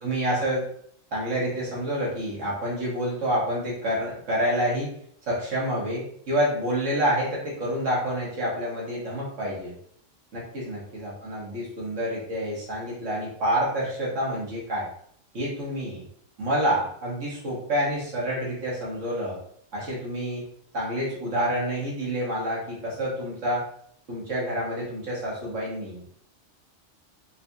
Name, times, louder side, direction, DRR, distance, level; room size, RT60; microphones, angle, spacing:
voice 1, 0.0-0.7 1.1-4.9 5.3-9.7 10.3-14.9 15.3-16.1 16.4-19.4 19.7-20.4 20.7-23.6 24.1-26.0, equal, 90° right, -5 dB, 1.7 m, -28 dB
4.2 x 2.3 x 2.7 m, 0.63 s
omnidirectional pair, 1.2 m